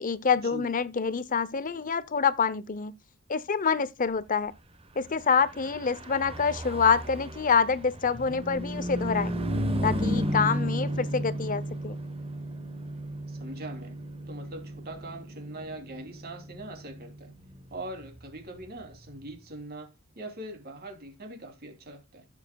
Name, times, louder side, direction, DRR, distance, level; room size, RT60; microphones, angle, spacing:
voice 1, 0.0-2.9 3.3-4.5 5.0-9.3 9.8-12.0, left 5 dB, 40° left, 0.7 m, -26 dB
Car passing by / Truck, 5.4-19.1, equal, 25° right, 1.1 m, -34 dB
voice 2, 10.8-11.2 13.3-14.0 14.3-17.3 17.7-22.3, right 1 dB, 45° right, 3.0 m, -42 dB
16.0 x 7.2 x 2.3 m
head